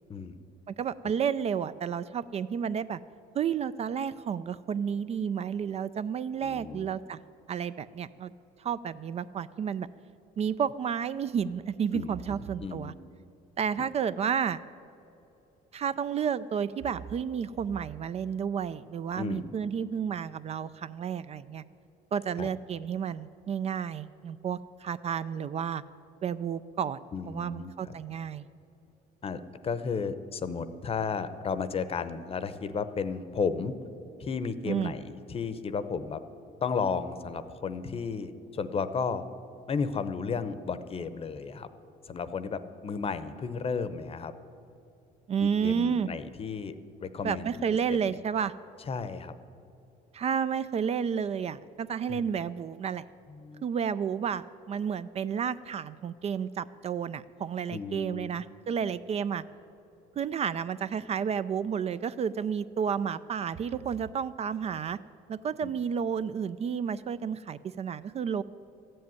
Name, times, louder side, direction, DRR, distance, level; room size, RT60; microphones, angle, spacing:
voice 1, 0.7-3.0 3.3-7.2 7.5-8.3 8.6-9.9 10.4-12.9 13.6-14.6 15.7-21.6 22.1-25.8 26.2-27.0 27.3-28.4 34.7-34.9 45.3-46.1 47.2-48.5 50.1-53.0 53.6-59.4 60.2-65.0 65.3-68.4, right 7 dB, 40° right, 14 dB, 0.4 m, -31 dB
voice 2, 6.4-6.9 11.9-12.9 13.8-13.9 19.2-19.5 22.4-22.5 27.1-27.7 29.2-33.7 34.2-36.2 36.6-39.2 39.7-41.7 42.0-44.3 45.4-47.5 47.9-48.0 48.8-49.3 52.1-52.3 53.3-53.6 57.7-58.4 65.6-65.7, left 5 dB, 35° left, 13 dB, 0.8 m, -33 dB
13.5 x 7.7 x 9.5 m, 2.7 s
cardioid pair, 110°, 17 cm